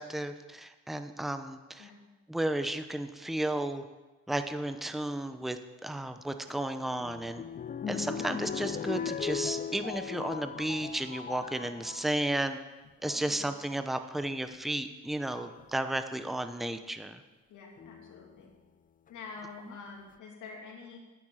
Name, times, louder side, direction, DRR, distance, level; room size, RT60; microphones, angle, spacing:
voice 1, 0.0-1.9 2.3-3.8 4.3-7.4 7.9-12.6 13.0-17.2, right 1 dB, ahead, 9 dB, 0.8 m, -33 dB
sound 1, 6.5-12.1 12.9-13.3 14.5-14.6 15.3-15.7 17.8-18.4 19.1-19.2 19.4-19.5, left 7 dB, 30° left, 0.4 m, -38 dB
voice 2, 13.1-13.5 17.5-18.5 19.1-21.0, left 4 dB, 80° left, 0 dB, 2.6 m, -47 dB
9.8 x 7.1 x 8.7 m, 1.2 s
cardioid pair, 90°, 30 cm